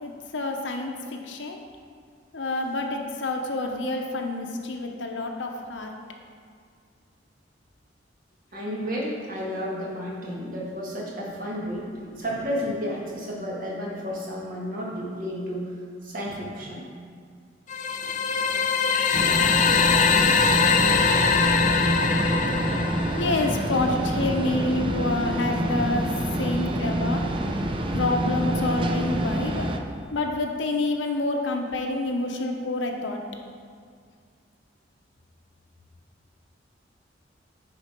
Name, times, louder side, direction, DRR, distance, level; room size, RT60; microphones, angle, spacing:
voice 1, 0.0-1.6 2.3-5.9 23.1-26.1 26.4-27.2 27.9-29.7 30.1-33.2, left 2 dB, 90° left, 3 dB, 0.9 m, -28 dB
voice 2, 8.5-15.8 16.0-16.9, equal, 50° right, -4 dB, 1.7 m, -32 dB
sound 1, 17.7-23.6, left 6 dB, 45° left, 0.4 m, -22 dB
sound 2, 19.1-29.8, right 1 dB, 30° right, 0.5 m, -27 dB
9.8 x 4.4 x 4.5 m, 2.1 s
head